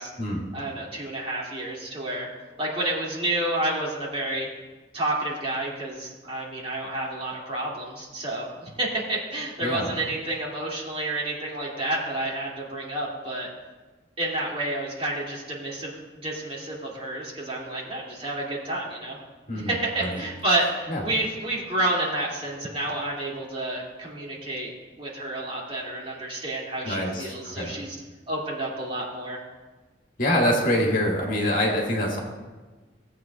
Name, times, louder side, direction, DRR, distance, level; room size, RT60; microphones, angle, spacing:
voice 1, 0.5-2.3 2.6-4.5 4.9-13.5 14.2-19.2 19.5-24.7 25.0-27.9 28.3-29.4, right 1 dB, 30° right, -5 dB, 2.4 m, -30 dB
voice 2, 9.6-9.9 19.5-19.7 20.0-20.2 20.9-21.0 26.8-27.8 30.2-32.2, left 1 dB, 50° left, -2 dB, 1.9 m, -25 dB
17.5 x 7.9 x 2.4 m, 1.3 s
head